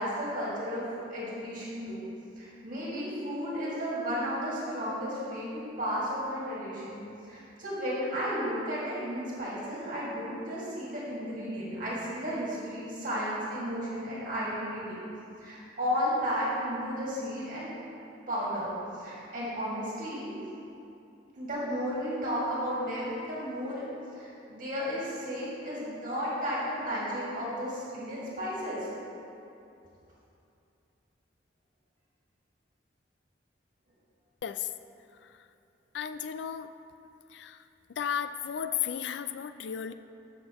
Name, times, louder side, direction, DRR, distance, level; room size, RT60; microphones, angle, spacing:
voice 1, 0.0-2.0 2.4-15.0 15.4-17.7 18.3-20.3 21.4-23.8 24.1-28.9, equal, 45° right, -7 dB, 2.1 m, -33 dB
voice 2, 35.9-36.7 37.3-37.6 38.0-39.9, left 8 dB, 70° left, 11 dB, 0.4 m, -34 dB
15.0 x 5.9 x 3.0 m, 2.7 s
head